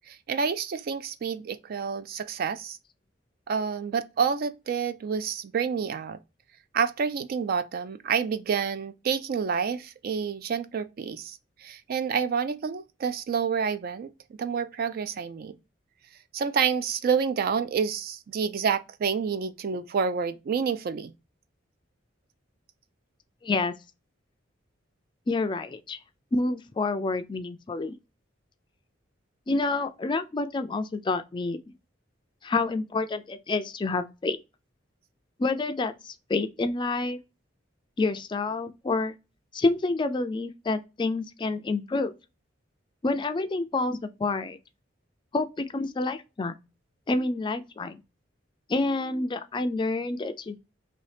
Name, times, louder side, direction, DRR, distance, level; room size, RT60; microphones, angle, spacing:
voice 1, 0.1-2.8 3.5-6.2 6.7-14.1 14.4-15.6 16.3-21.1, right 6 dB, 50° right, 0.3 m, -28 dB
voice 2, 23.4-23.7 25.3-26.0 26.3-28.0 29.5-31.7 32.4-34.4 35.4-37.2 38.0-39.1 39.5-42.1 43.0-44.6 45.3-46.5 47.1-48.0 48.7-50.6, left 3 dB, 25° left, 0.3 m, -28 dB
2.7 x 2.7 x 3.2 m
head